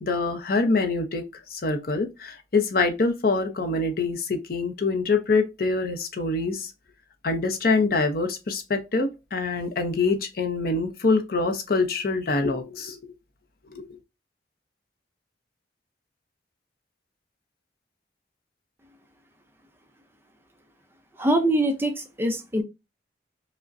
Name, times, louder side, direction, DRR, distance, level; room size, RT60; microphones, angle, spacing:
voice 1, 0.0-1.2 1.5-6.7 7.2-13.0 13.7-14.0, left 3 dB, 55° left, 0.6 m, -25 dB
voice 2, 21.2-22.6, right 1 dB, 10° right, 0.5 m, -23 dB
4.9 x 2.1 x 2.5 m
head